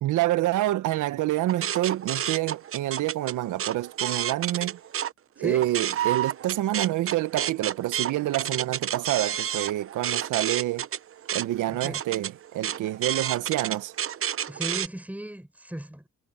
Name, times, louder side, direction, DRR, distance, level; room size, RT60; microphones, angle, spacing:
voice 1, 0.0-4.8 5.4-10.9 11.3-13.9, right 15 dB, 80° right, 1.0 m, -27 dB
sound 1, 1.5-5.1 5.5-14.9, right 9 dB, 45° right, 0.8 m, -30 dB
voice 2, 5.4-5.7 11.7-12.0 14.5-16.1, right 1 dB, 5° right, 6.4 m, -36 dB
cardioid pair, 90°, 30 cm